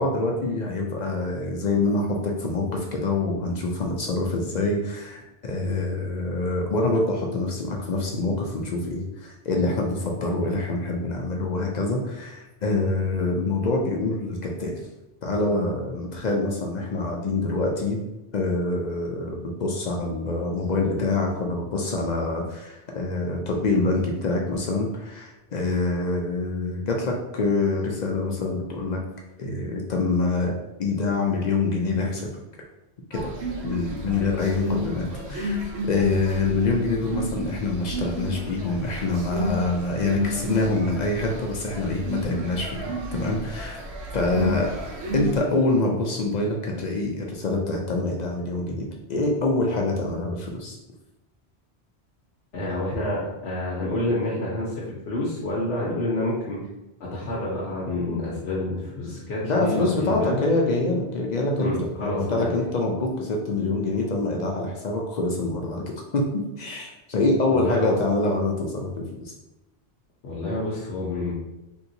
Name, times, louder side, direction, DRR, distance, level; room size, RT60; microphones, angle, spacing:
voice 1, 0.0-14.8 15.2-18.0 18.3-29.0 29.4-30.5 30.8-32.3 33.1-33.3 33.6-43.8 44.1-44.7 45.1-50.8 59.4-65.8 66.1-69.3, left 2 dB, 55° left, 0 dB, 0.5 m, -25 dB
sound 1, 33.1-45.4, equal, 90° right, 1.0 m, -32 dB
voice 2, 52.5-56.6 57.0-60.4 61.6-62.5 67.5-68.0 70.2-71.3, left 1 dB, 80° left, -6 dB, 1.0 m, -28 dB
3.3 x 2.8 x 2.7 m, 0.96 s
omnidirectional pair, 1.1 m